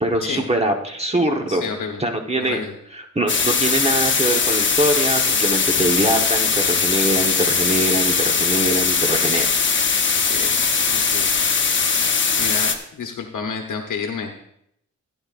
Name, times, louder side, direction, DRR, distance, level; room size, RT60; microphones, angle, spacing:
voice 1, 0.0-1.7 2.0-2.6 2.9-9.5, right 1 dB, 20° right, 2 dB, 1.1 m, -23 dB
voice 2, 1.5-2.0 2.5-2.7 10.2-10.6 10.9-11.4 11.8-14.3, left 5 dB, 75° left, 3 dB, 1.0 m, -30 dB
sound 1, 3.3-12.7, left 5 dB, 40° left, 1.0 m, -20 dB
15.5 x 10.0 x 2.5 m, 0.73 s
wide cardioid pair, 125°, 31 cm